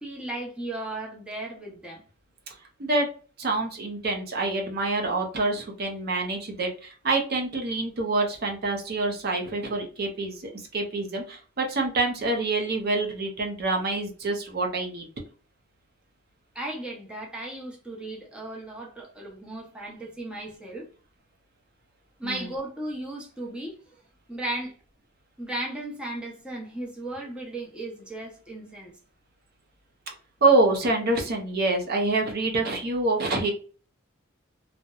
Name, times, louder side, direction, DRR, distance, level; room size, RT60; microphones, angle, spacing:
voice 1, 0.0-2.0 16.5-20.9 22.2-23.7 24.3-24.7 25.4-28.9, right 1 dB, 5° right, 0.6 m, -35 dB
voice 2, 3.4-15.1 22.2-22.5 30.4-33.5, right 2 dB, 50° right, 0.5 m, -26 dB
2.7 x 2.0 x 2.3 m
head